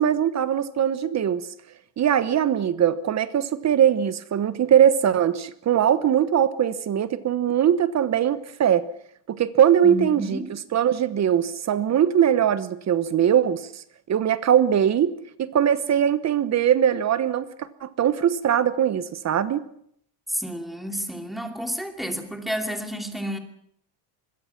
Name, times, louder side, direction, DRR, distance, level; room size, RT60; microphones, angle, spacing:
voice 1, 0.0-1.5 2.0-8.9 9.3-15.1 15.4-19.6, right 9 dB, 35° right, 14 dB, 1.1 m, -21 dB
voice 2, 9.8-10.5 20.3-23.4, right 1 dB, ahead, 5 dB, 2.7 m, -30 dB
25.0 x 21.5 x 6.0 m, 0.68 s
cardioid pair, 145°, 48 cm